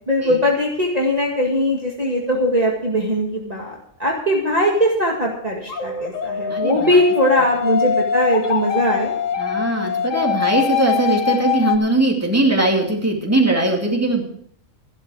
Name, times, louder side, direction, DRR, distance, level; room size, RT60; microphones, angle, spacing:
voice 1, 0.0-9.1, equal, 30° right, -2 dB, 2.1 m, -20 dB
sound 1, 5.7-11.8, left 7 dB, 85° left, 1.4 m, -23 dB
voice 2, 9.4-14.2, right 2 dB, 10° right, 0 dB, 2.5 m, -20 dB
14.0 x 12.0 x 4.9 m, 0.64 s
omnidirectional pair, 1.3 m